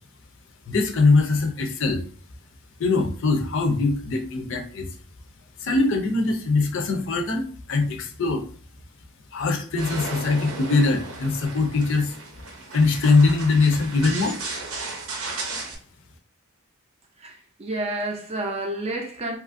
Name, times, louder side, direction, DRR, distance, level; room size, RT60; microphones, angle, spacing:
voice 1, 0.7-2.0 2.8-4.9 5.6-8.4 9.3-12.1 12.7-14.4, left 3 dB, 60° left, 0.5 m, -22 dB
sound 1, 9.8-15.8, right 3 dB, 70° right, 0.7 m, -35 dB
voice 2, 17.2-19.4, right 2 dB, 30° right, 0.4 m, -30 dB
2.8 x 2.4 x 2.5 m
head